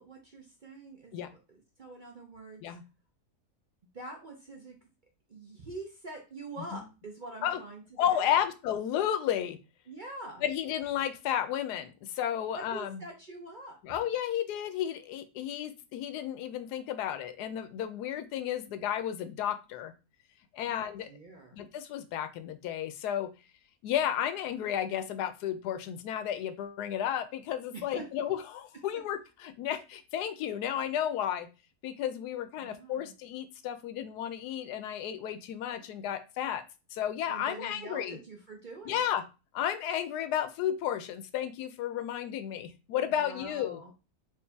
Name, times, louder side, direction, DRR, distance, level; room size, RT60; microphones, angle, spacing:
voice 1, 0.0-2.8 3.9-4.8 5.3-7.8 8.1-8.4 9.9-10.4 12.5-13.8 20.6-21.6 27.7-28.1 32.6-33.1 37.3-39.2 43.1-43.9, right 2 dB, 50° right, 0 dB, 0.6 m, -45 dB
voice 2, 8.0-9.6 10.4-13.0 13.8-19.9 20.5-21.1 21.5-23.3 23.8-31.5 31.8-36.6 36.9-38.2 38.9-39.2 39.5-43.8, left 10 dB, 85° left, 10 dB, 1.1 m, -32 dB
4.7 x 2.7 x 3.4 m, 0.30 s
omnidirectional pair, 1.7 m